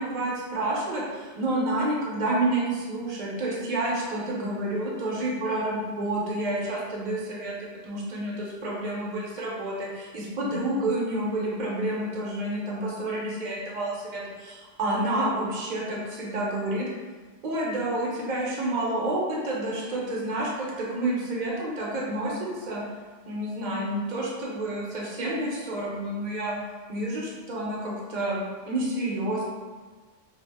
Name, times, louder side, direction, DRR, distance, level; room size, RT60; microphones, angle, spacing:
voice 1, 0.0-16.8 17.4-22.8 23.3-26.6 26.9-29.4, right 1 dB, 50° right, -4 dB, 0.7 m, -29 dB
2.3 x 2.0 x 3.3 m, 1.4 s
omnidirectional pair, 1.1 m